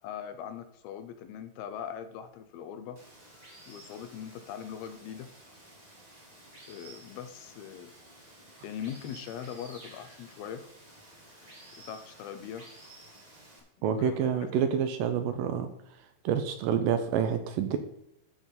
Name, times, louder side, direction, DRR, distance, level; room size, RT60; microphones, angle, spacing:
voice 1, 0.0-3.0 3.7-5.3 6.7-7.9 8.6-10.7 11.8-12.7 13.8-14.5, left 8 dB, 85° left, 9 dB, 2.7 m, -41 dB
Water, 3.0-13.6, right 1 dB, 15° right, 1.3 m, -53 dB
voice 2, 13.8-15.7 16.2-17.8, right 8 dB, 80° right, 8 dB, 2.2 m, -28 dB
12.5 x 4.5 x 5.2 m, 0.81 s
omnidirectional pair, 4.3 m